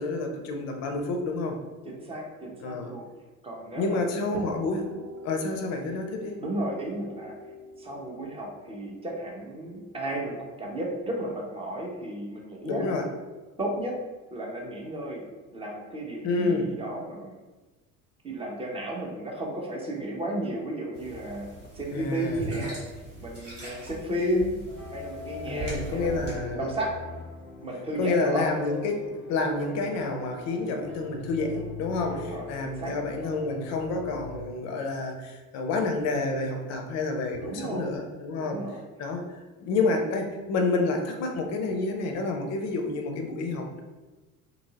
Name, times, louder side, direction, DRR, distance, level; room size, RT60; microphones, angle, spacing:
voice 1, 0.0-1.6 2.6-2.9 3.7-5.0 5.2-6.4 12.6-13.1 16.2-16.7 21.9-22.4 25.5-26.7 28.0-38.6 39.0-39.2 39.6-43.8, left 3 dB, 40° left, 4 dB, 0.5 m, -29 dB
voice 2, 1.8-3.0 3.4-4.4 6.4-7.4 7.8-12.9 13.6-14.0 14.3-15.2 15.5-17.4 18.2-22.8 23.2-24.6 24.9-26.9 27.6-28.5 32.1-33.0 37.4-37.9 38.4-38.8, right 1 dB, 15° right, -1 dB, 0.5 m, -33 dB
sound 1, 4.3-12.1, right 1 dB, 60° right, 0.6 m, -45 dB
sound 2, 20.9-26.3, right 2 dB, 85° right, 1.1 m, -40 dB
sound 3, 24.7-34.5, left 3 dB, 5° left, 0.9 m, -42 dB
2.8 x 2.7 x 2.7 m, 1.2 s
figure-of-eight pair, 65°, 45 cm